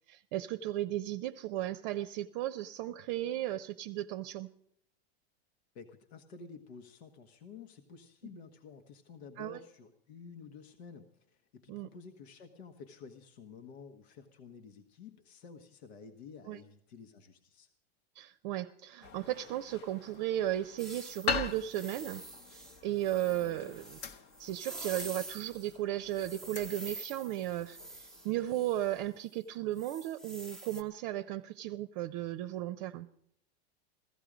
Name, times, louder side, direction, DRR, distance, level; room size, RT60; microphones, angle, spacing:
voice 1, 0.1-4.5 9.4-9.6 11.7-11.9 16.5-16.6 18.2-22.2 22.5-24.0 24.4-33.1, right 13 dB, 45° right, 10 dB, 0.6 m, -35 dB
voice 2, 5.7-17.7, left 5 dB, 90° left, 6 dB, 1.5 m, -51 dB
sound 1, 19.0-29.2, left 5 dB, 35° left, 0.9 m, -43 dB
sound 2, 20.8-25.8 26.1-29.0 29.8-30.8, right 2 dB, ahead, 0.5 m, -47 dB
16.0 x 14.0 x 5.0 m, 0.72 s
supercardioid pair, 165°, 32 cm